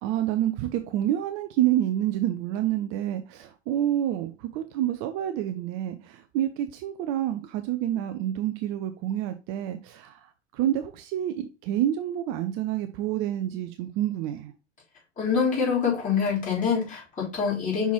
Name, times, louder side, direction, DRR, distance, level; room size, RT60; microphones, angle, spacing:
voice 1, 0.0-14.5, right 12 dB, 35° right, 0.6 m, -28 dB
voice 2, 15.2-17.9, left 6 dB, 25° left, 3.8 m, -25 dB
5.8 x 5.4 x 3.0 m
figure-of-eight pair, 85°, 35 cm